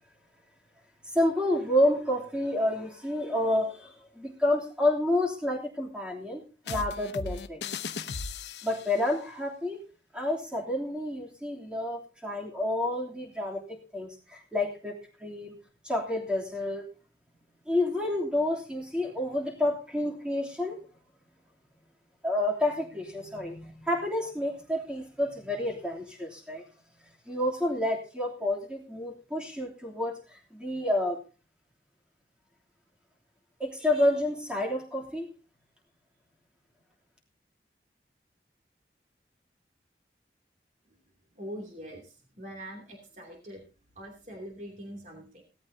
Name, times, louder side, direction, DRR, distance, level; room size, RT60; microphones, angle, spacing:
voice 1, 1.0-7.6 8.6-9.8 10.1-15.6 15.8-16.9 17.7-20.8 22.2-26.6 27.3-31.2 33.6-35.3, left 1 dB, 5° right, -2 dB, 3.0 m, -29 dB
sound 1, 6.7-9.0, left 4 dB, 80° left, 0.9 m, -37 dB
voice 2, 41.3-43.6 43.9-45.4, equal, 45° right, 1 dB, 2.8 m, -43 dB
18.0 x 13.5 x 2.8 m, 0.35 s
head